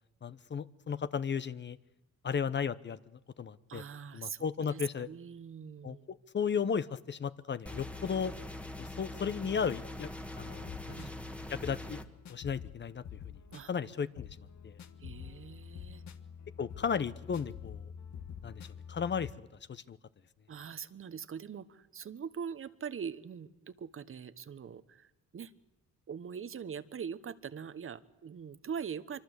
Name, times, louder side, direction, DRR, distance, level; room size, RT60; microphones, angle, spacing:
voice 1, 0.2-1.8 2.2-3.0 3.4-3.8 4.1-5.1 5.8-8.3 8.8-10.1 10.4-11.0 11.5-12.0 12.3-13.0 13.7-14.3 14.6-14.8 16.6-17.9 18.4-20.0, left 6 dB, 35° left, 15 dB, 0.9 m, -35 dB
voice 2, 3.7-6.1 10.9-11.2 13.5-13.7 15.0-16.0 20.5-25.5 26.1-29.2, right 7 dB, 45° right, 14 dB, 1.2 m, -42 dB
sound 1, 7.7-12.1, left 1 dB, 5° left, 1.7 m, -43 dB
sound 2, 10.6-19.3, left 8 dB, 65° left, 1.7 m, -48 dB
25.0 x 24.5 x 8.2 m, 0.93 s
cardioid pair, 90°, 30 cm